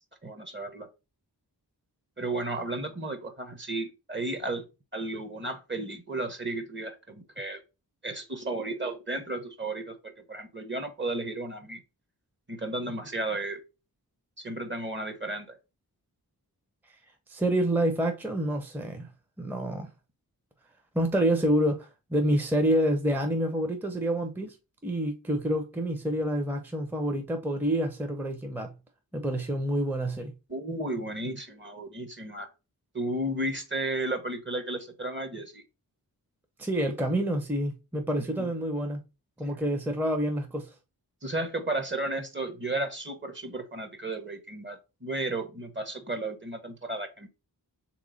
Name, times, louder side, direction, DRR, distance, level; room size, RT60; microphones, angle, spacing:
voice 1, 0.2-0.9 2.2-4.6 4.9-7.6 8.0-11.8 12.5-13.6 14.4-15.5 30.5-32.5 32.9-35.6 38.4-38.5 41.2-47.3, right 2 dB, 30° right, 0.9 m, -33 dB
voice 2, 17.3-19.1 19.4-19.9 20.9-24.6 24.8-28.7 29.1-30.3 36.6-39.0 39.4-40.7, right 1 dB, 5° right, 0.6 m, -28 dB
3.3 x 3.0 x 3.9 m
cardioid pair, 45°, 39 cm